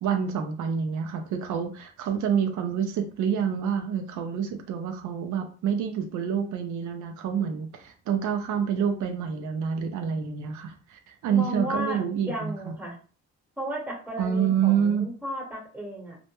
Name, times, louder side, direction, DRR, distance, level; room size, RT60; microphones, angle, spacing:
voice 1, 0.0-12.5 14.2-15.1, right 7 dB, 75° right, 5 dB, 0.5 m, -27 dB
voice 2, 11.3-12.0 12.3-13.0 13.6-16.2, equal, 5° right, -2 dB, 1.0 m, -34 dB
2.1 x 2.0 x 3.0 m, 0.39 s
cardioid pair, 90°, 30 cm